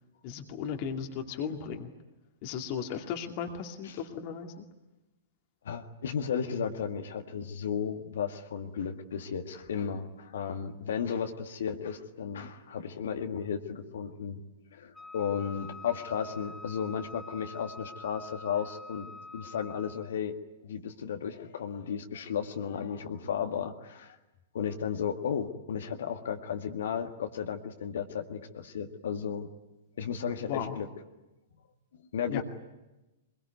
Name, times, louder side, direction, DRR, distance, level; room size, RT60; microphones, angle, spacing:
voice 1, 0.2-1.9 2.4-4.6 30.5-30.8 32.3-32.4, left 7 dB, 40° left, 3 dB, 2.3 m, -36 dB
voice 2, 5.6-14.4 14.7-19.1 19.3-20.3 20.6-24.2 24.5-29.5 30.0-30.9 32.1-32.4, left 7 dB, 60° left, 4 dB, 1.8 m, -34 dB
Wind instrument woodwind instrument, 14.9-20.2, left 2 dB, 5° left, 1.2 m, -46 dB
24.5 x 22.0 x 9.5 m, 1.0 s
figure-of-eight pair, 105°, 0 cm